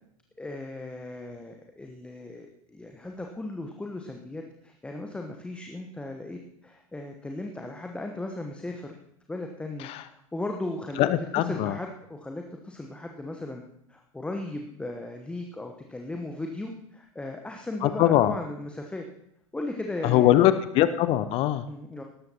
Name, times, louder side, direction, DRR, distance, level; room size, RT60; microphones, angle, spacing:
voice 1, 0.4-8.9 9.3-13.6 13.9-19.0 19.5-20.5 21.7-22.0, left 2 dB, 5° left, 3 dB, 1.0 m, -37 dB
voice 2, 11.0-11.7 17.8-18.3 20.0-21.6, left 13 dB, 35° left, 14 dB, 0.6 m, -22 dB
18.0 x 14.0 x 2.9 m, 0.75 s
figure-of-eight pair, 90°, 18 cm